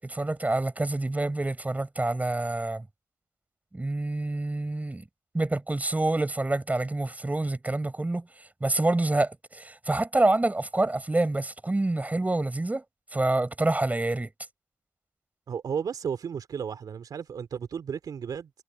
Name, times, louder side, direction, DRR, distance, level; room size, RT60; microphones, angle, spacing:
voice 1, 0.0-2.9 3.7-5.0 5.3-8.3 8.6-12.8 13.1-14.3, right 2 dB, 25° right, 6.8 m, -27 dB
voice 2, 15.5-18.5, right 7 dB, 70° right, 2.8 m, -33 dB
cardioid pair, 55°, 7 cm